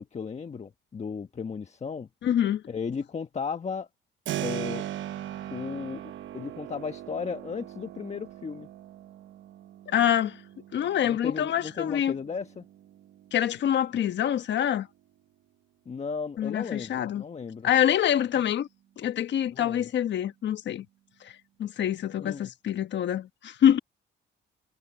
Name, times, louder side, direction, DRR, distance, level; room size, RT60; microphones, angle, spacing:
voice 1, 0.0-2.1 2.7-3.9 4.4-4.8 5.5-6.0 6.3-8.7 11.0-12.6 15.8-17.7 19.5-19.9 22.2-22.5, left 5 dB, 35° left, 1.3 m, -35 dB
voice 2, 2.2-2.6 9.9-10.4 10.7-12.1 13.3-14.9 16.4-17.2 17.6-18.7 19.0-20.8 21.2-21.3 21.6-23.8, left 10 dB, 65° left, 1.3 m, -25 dB
Keyboard (musical), 4.3-14.9, right 13 dB, 75° right, 1.0 m, -40 dB
cardioid pair, 90°, 20 cm